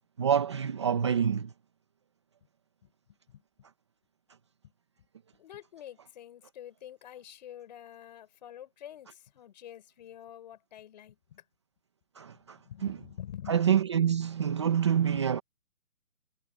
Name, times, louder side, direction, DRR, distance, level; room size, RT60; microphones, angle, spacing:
voice 1, 0.2-1.5 12.2-13.0 13.5-15.4, right 8 dB, 20° right, 1.0 m, -27 dB
voice 2, 5.4-11.4 12.3-13.6 15.1-15.2, left 11 dB, 30° left, 5.5 m, -47 dB
hypercardioid pair, 170°, 45 cm